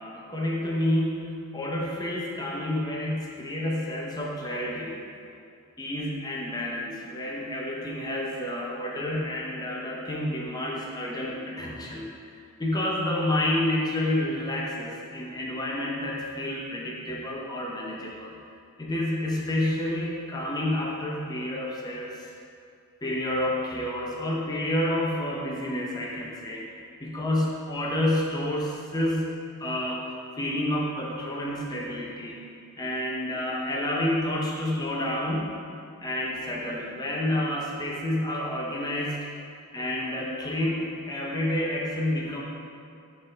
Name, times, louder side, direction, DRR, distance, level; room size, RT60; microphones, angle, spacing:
voice 1, 0.0-5.0 5.8-12.2 12.6-18.3 18.8-22.2 23.0-26.7 27.0-29.3 29.6-32.4 32.8-35.6 36.0-39.2 39.7-42.4, left 1 dB, 15° left, -3 dB, 0.7 m, -29 dB
8.4 x 3.8 x 3.9 m, 2.4 s
head